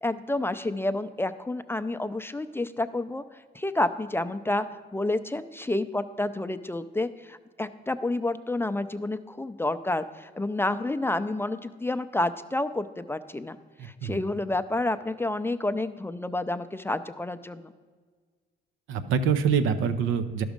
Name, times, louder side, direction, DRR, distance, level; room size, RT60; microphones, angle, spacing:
voice 1, 0.0-3.2 3.5-4.7 4.9-13.6 13.8-17.7, left 2 dB, 10° left, 11 dB, 0.4 m, -29 dB
voice 2, 13.8-14.2 18.9-20.4, right 6 dB, 85° right, 9 dB, 0.7 m, -25 dB
11.5 x 6.1 x 5.1 m, 1.5 s
cardioid pair, 90°, 20 cm